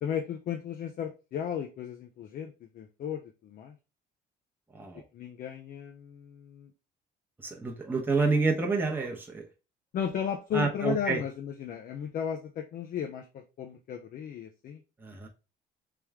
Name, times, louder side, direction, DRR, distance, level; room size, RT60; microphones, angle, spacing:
voice 1, 0.0-3.8 5.1-6.7 9.9-14.8, left 8 dB, 55° left, 4 dB, 0.6 m, -35 dB
voice 2, 7.4-9.4 10.5-11.2 15.0-15.3, right 4 dB, 10° right, 0 dB, 0.9 m, -28 dB
3.4 x 3.0 x 3.5 m, 0.31 s
cardioid pair, 110°, 17 cm